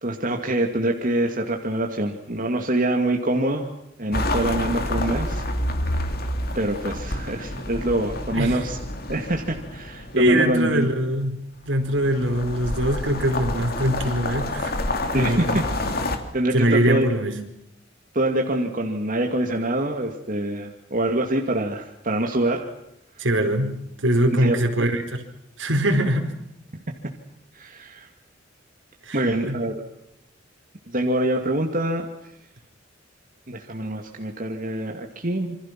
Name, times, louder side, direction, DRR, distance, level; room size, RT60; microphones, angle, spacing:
voice 1, 0.0-3.7 4.0-5.4 6.5-8.8 9.1-10.9 15.1-15.7 16.3-17.1 18.1-22.7 24.3-24.6 27.5-28.1 29.1-29.7 30.9-32.1 33.5-35.6, right 1 dB, 45° right, 2 dB, 2.5 m, -25 dB
sound 1, 4.1-10.6 11.7-16.2, left 1 dB, 55° left, 3.1 m, -28 dB
voice 2, 10.1-14.8 15.1-15.6 16.5-17.4 23.2-23.8 24.0-25.3 25.6-26.3 29.1-29.5, right 1 dB, 80° right, 4 dB, 4.7 m, -22 dB
28.0 x 25.5 x 6.1 m, 0.83 s
head